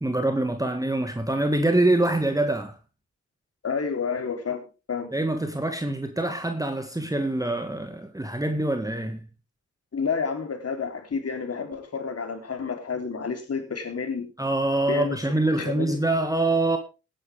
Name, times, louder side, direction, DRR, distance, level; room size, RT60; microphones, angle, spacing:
voice 1, 0.0-2.8 5.1-9.2 14.4-16.8, right 2 dB, 10° right, 1.8 m, -25 dB
voice 2, 3.6-5.1 9.9-14.3 14.9-15.2 15.5-16.0, left 5 dB, 45° left, 3.6 m, -30 dB
17.0 x 10.0 x 3.6 m
hypercardioid pair, 45°, 33 cm